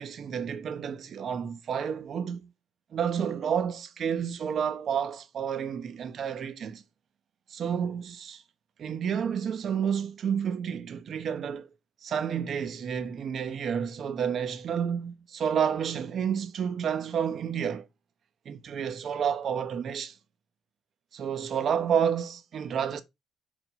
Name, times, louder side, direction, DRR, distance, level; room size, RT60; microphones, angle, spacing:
voice 1, 0.0-2.5 2.9-6.8 7.5-8.4 8.8-11.7 12.0-17.9 18.4-20.1 21.1-23.0, right 7 dB, 60° right, 1.0 m, -30 dB
5.2 x 5.1 x 5.3 m
cardioid pair, 90°, 0 cm